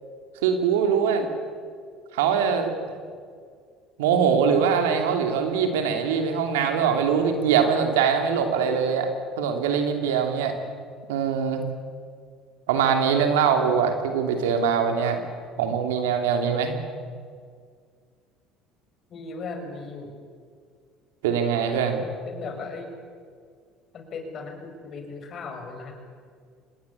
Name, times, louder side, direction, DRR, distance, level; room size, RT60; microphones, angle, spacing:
voice 1, 0.4-1.3 2.1-2.7 4.0-9.1 9.4-10.5 11.1-11.6 12.7-15.2 15.6-16.7 21.2-22.0, right 7 dB, 85° right, 5 dB, 3.0 m, -22 dB
voice 2, 19.1-20.2 22.3-22.9 23.9-25.9, left 4 dB, 50° left, 4 dB, 6.1 m, -37 dB
25.5 x 20.0 x 8.6 m, 2.1 s
hypercardioid pair, 70°, 0 cm